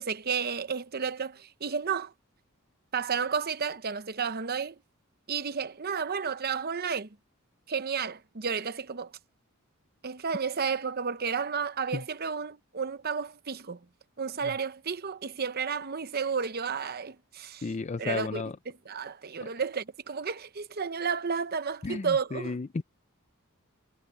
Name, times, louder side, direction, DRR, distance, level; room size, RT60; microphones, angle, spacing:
voice 1, 0.0-2.1 2.9-4.8 5.3-7.1 7.7-9.1 10.0-13.8 14.2-17.6 18.0-18.4 18.9-22.6, right 6 dB, 45° right, 0.8 m, -32 dB
voice 2, 17.6-18.6 19.4-19.5 21.8-22.8, left 3 dB, 30° left, 0.4 m, -33 dB
head